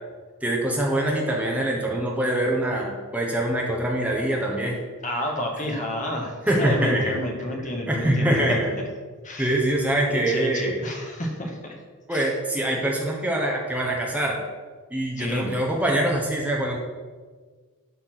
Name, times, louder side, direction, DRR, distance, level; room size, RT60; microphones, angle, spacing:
voice 1, 0.4-4.8 6.5-7.1 7.9-8.7 9.4-10.8 12.1-14.4 14.9-16.8, right 1 dB, 5° right, -2 dB, 1.1 m, -24 dB
voice 2, 5.0-8.6 9.2-9.6 10.1-11.8 12.1-12.3 15.2-15.5, left 1 dB, 35° left, 1 dB, 1.6 m, -30 dB
12.0 x 4.4 x 6.0 m, 1.5 s
head